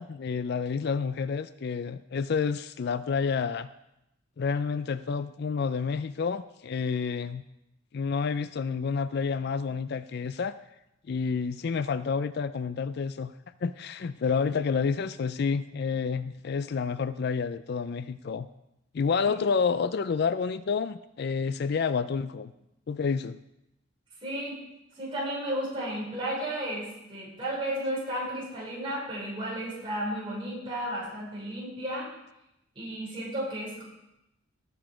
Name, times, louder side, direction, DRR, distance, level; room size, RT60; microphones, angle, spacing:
voice 1, 0.0-3.7 4.4-7.4 7.9-10.6 11.1-13.3 13.6-18.5 18.9-22.5 22.9-23.4, left 5 dB, 50° left, 13 dB, 0.4 m, -29 dB
voice 2, 24.2-24.6 25.0-32.1 32.8-33.8, right 1 dB, 25° right, -6 dB, 5.7 m, -33 dB
17.5 x 7.0 x 5.0 m, 0.88 s
head